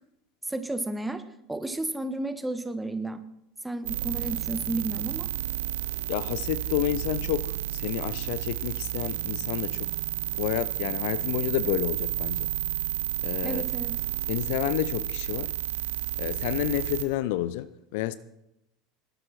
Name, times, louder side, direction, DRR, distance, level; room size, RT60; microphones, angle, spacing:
voice 1, 0.5-1.2 1.5-3.2 3.6-5.3 13.4-14.0, right 2 dB, 5° right, 1.3 m, -32 dB
sound 1, 3.8-17.0, right 14 dB, 65° right, 0.9 m, -31 dB
voice 2, 6.1-9.9 10.4-12.5 13.2-13.6 14.3-15.5 16.2-18.2, left 14 dB, 55° left, 0.6 m, -30 dB
20.5 x 12.0 x 4.4 m
figure-of-eight pair, 75°, 0 cm